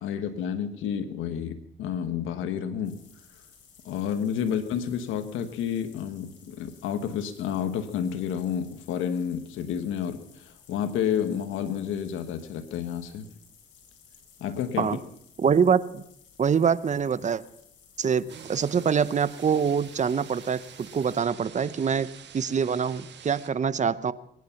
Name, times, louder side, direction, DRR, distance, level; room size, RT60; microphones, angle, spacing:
voice 1, 0.0-3.0 3.8-13.3 14.4-15.0, left 8 dB, 90° left, 8 dB, 1.3 m, -30 dB
sound 1, 2.8-21.2, left 7 dB, 65° left, 3.7 m, -57 dB
voice 2, 15.4-16.0 16.4-17.4 18.0-22.1 22.3-24.1, right 6 dB, 35° right, 16 dB, 0.8 m, -25 dB
sound 2, 18.3-23.5, right 8 dB, 60° right, 1.5 m, -47 dB
23.0 x 9.4 x 5.9 m, 0.72 s
cardioid pair, 90°, 20 cm